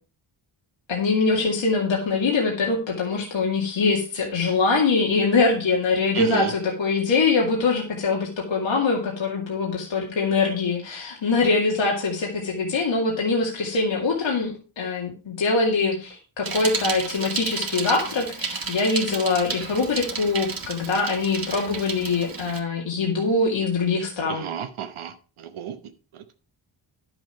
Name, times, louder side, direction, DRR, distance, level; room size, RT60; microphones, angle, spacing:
voice 1, 0.9-24.5, left 4 dB, 65° left, -1 dB, 2.3 m, -23 dB
voice 2, 6.1-6.5 24.3-25.7 26.1-26.4, right 9 dB, 80° right, 7 dB, 1.1 m, -32 dB
Bicycle, 16.4-22.6, right 4 dB, 45° right, 1.9 m, -32 dB
11.0 x 7.1 x 4.6 m, 0.36 s
wide cardioid pair, 145°, 49 cm